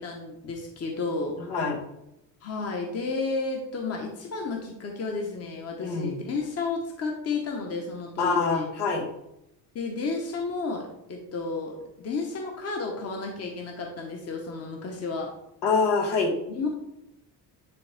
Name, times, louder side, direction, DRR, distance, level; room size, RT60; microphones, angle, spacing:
voice 1, 0.0-1.4 2.4-8.7 9.7-15.3 16.5-16.7, left 3 dB, 40° left, 1 dB, 1.3 m, -32 dB
voice 2, 1.4-1.8 5.8-6.2 8.2-9.1 15.6-16.3, left 4 dB, 75° left, 0 dB, 2.0 m, -25 dB
10.0 x 3.7 x 3.5 m, 0.84 s
cardioid pair, 135°, 40 cm